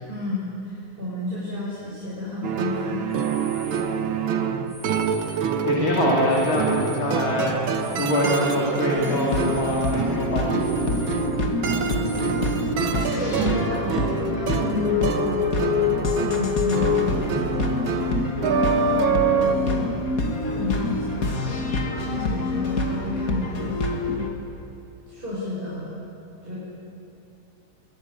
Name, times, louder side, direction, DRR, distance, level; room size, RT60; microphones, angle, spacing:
voice 1, 0.1-3.1 11.8-15.6 16.1-18.2 18.5-19.9 20.5-21.5 21.9-23.7 25.1-26.0 26.4-26.6, left 2 dB, 25° right, -8 dB, 6.6 m, -32 dB
sound 1, 2.4-19.6, right 6 dB, 85° right, 2.1 m, -26 dB
sound 2, 3.1-4.0 4.7-5.7 6.1-8.6 8.9-12.3, equal, ahead, 5.3 m, -46 dB
voice 2, 4.2-4.6 5.2-10.9, left 1 dB, 85° left, -3 dB, 3.9 m, -25 dB
sound 3, 9.0-24.3, left 3 dB, 45° left, 2.5 m, -26 dB
23.5 x 20.5 x 9.8 m, 2.8 s
omnidirectional pair, 2.2 m